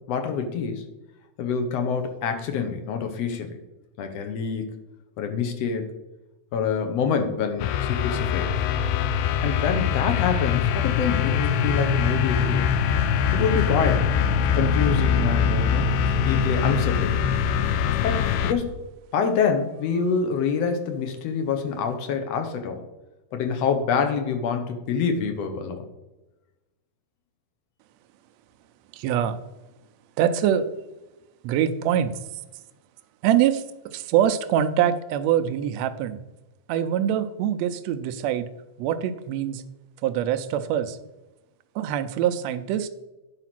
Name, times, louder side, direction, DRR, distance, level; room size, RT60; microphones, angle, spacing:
voice 1, 0.1-0.8 1.4-3.6 4.0-4.8 5.2-5.9 6.5-8.5 9.4-12.7 13.3-14.1 14.5-15.9 16.2-17.2 18.0-18.8 19.1-22.8 23.3-25.9, left 6 dB, 65° left, 6 dB, 1.9 m, -26 dB
sound 1, 7.6-18.5, left 7 dB, 80° left, 1.9 m, -23 dB
voice 2, 28.9-29.4 30.2-30.7 31.4-32.1 33.2-33.6 33.9-36.2 36.7-38.5 38.8-39.6 40.0-41.0 41.7-42.9, right 10 dB, 75° right, 10 dB, 1.7 m, -24 dB
9.9 x 4.8 x 5.9 m, 1.1 s
omnidirectional pair, 3.4 m